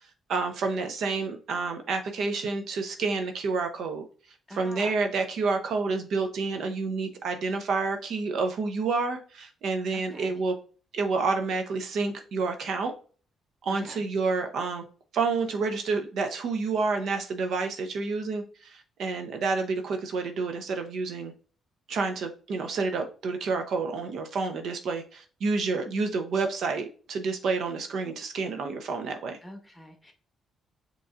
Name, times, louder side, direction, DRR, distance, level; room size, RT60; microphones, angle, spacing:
voice 1, 0.3-4.0 4.5-10.6 10.9-12.9 13.6-14.8 15.1-21.3 21.9-29.4, right 4 dB, 70° right, 0.7 m, -29 dB
voice 2, 4.5-4.9 9.9-10.3 13.8-14.0 29.4-30.1, left 1 dB, 10° left, 1.2 m, -44 dB
5.1 x 3.1 x 2.5 m
cardioid pair, 90°, 0 cm